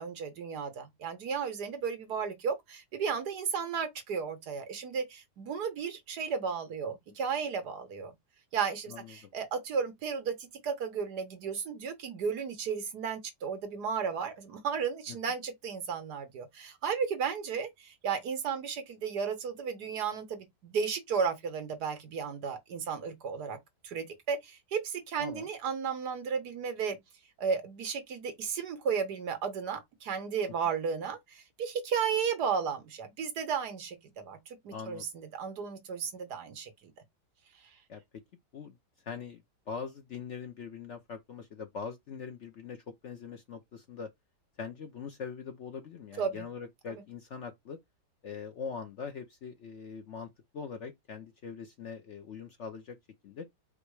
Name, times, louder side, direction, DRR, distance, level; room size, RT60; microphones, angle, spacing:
voice 1, 0.0-8.1 8.5-23.6 23.8-27.0 27.4-36.7 46.2-46.5 46.9-47.0, right 6 dB, 70° right, 1.6 m, -34 dB
voice 2, 34.7-35.1 37.9-38.0 38.5-38.8 39.1-39.4 39.7-44.1 44.6-47.8 48.2-53.0 53.2-53.5, left 6 dB, 55° left, 0.8 m, -42 dB
5.0 x 2.1 x 4.7 m
omnidirectional pair, 1.8 m